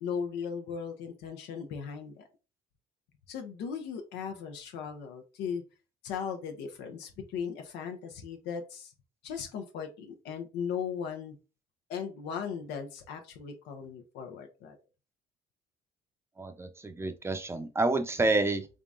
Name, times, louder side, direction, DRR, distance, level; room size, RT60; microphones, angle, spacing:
voice 1, 0.0-2.2 3.3-5.6 6.0-8.9 9.2-11.4 11.9-14.8, left 7 dB, 80° left, 4 dB, 0.8 m, -37 dB
voice 2, 16.4-18.7, right 2 dB, 15° right, 8 dB, 0.6 m, -29 dB
3.7 x 3.5 x 2.5 m, 0.30 s
cardioid pair, 110°, 17 cm